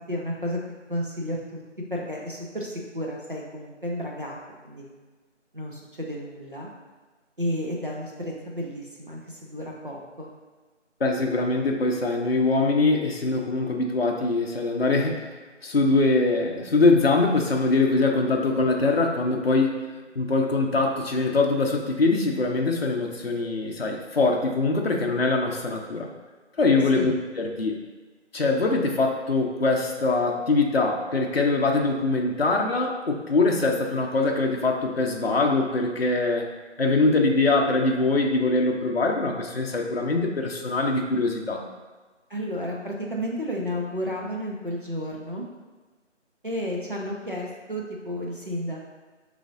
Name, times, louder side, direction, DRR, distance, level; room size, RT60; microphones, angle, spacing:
voice 1, 0.1-0.6 0.9-1.6 1.9-4.4 4.6-4.9 5.5-6.7 7.4-10.3 27.0-27.1 42.3-45.5 46.4-48.8, equal, 45° right, -2 dB, 0.6 m, -32 dB
voice 2, 11.0-15.3 15.6-19.8 20.2-26.1 26.6-27.8 28.3-36.5 36.8-41.6, left 3 dB, 55° left, 1 dB, 0.5 m, -23 dB
4.8 x 3.2 x 2.6 m, 1.3 s
figure-of-eight pair, 180°, 37 cm